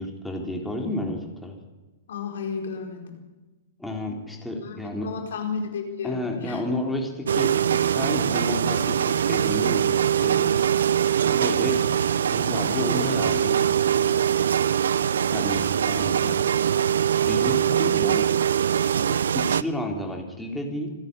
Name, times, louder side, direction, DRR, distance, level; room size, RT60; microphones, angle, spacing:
voice 1, 0.0-1.6 3.8-5.1 6.0-10.5 11.2-11.8 12.3-14.3 15.3-16.4 17.2-18.3 19.1-20.9, left 1 dB, 5° left, 1 dB, 3.9 m, -31 dB
voice 2, 2.1-3.2 4.6-6.6, left 5 dB, 70° left, 3 dB, 4.5 m, -33 dB
sound 1, 7.3-19.6, right 9 dB, 75° right, 0.6 m, -22 dB
27.0 x 10.5 x 9.8 m, 1.2 s
hypercardioid pair, 120°, 0 cm